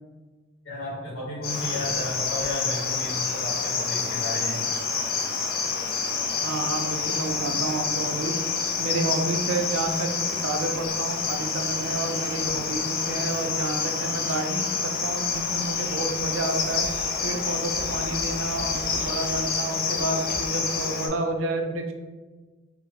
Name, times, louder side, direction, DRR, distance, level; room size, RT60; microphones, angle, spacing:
voice 1, 0.6-4.8, left 1 dB, 65° left, -7 dB, 1.3 m, -33 dB
Cricket, 1.4-21.1, left 5 dB, 50° left, 0.4 m, -28 dB
voice 2, 6.4-8.3 8.8-16.9 17.2-21.9, right 2 dB, 80° right, 4 dB, 0.4 m, -30 dB
3.8 x 2.1 x 2.7 m, 1.3 s
head